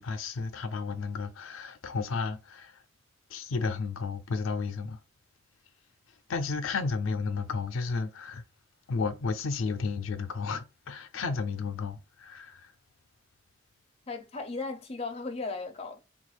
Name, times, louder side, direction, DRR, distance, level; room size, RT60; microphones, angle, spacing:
voice 1, 0.0-2.8 3.3-5.0 6.3-8.4 8.9-12.7, left 4 dB, 85° left, 0.4 m, -32 dB
voice 2, 14.1-16.0, left 3 dB, 30° left, 0.5 m, -36 dB
3.6 x 2.3 x 3.1 m
head